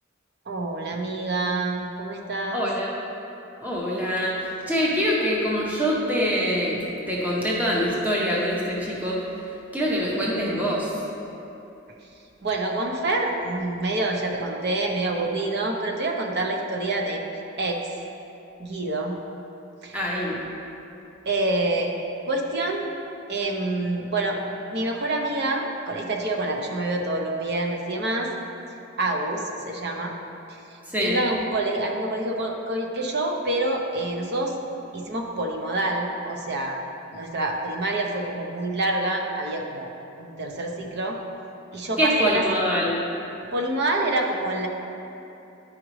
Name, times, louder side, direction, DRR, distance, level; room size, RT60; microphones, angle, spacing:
voice 1, 0.5-2.7 12.4-17.8 18.6-19.2 19.8-20.0 21.3-21.9 22.2-22.9 23.3-24.4 24.7-28.3 29.0-30.1 30.5-30.6 31.0-34.5 34.9-36.8 37.1-39.9 40.2-41.2 41.7-42.4 43.5-44.7, right 2 dB, 55° right, 1 dB, 0.8 m, -27 dB
voice 2, 2.5-2.9 3.6-4.3 4.7-6.8 7.1-9.2 9.7-10.9 19.9-20.4 30.9-31.2 42.0-43.0, equal, 10° right, -5 dB, 0.8 m, -24 dB
10.0 x 4.9 x 3.2 m, 2.8 s
head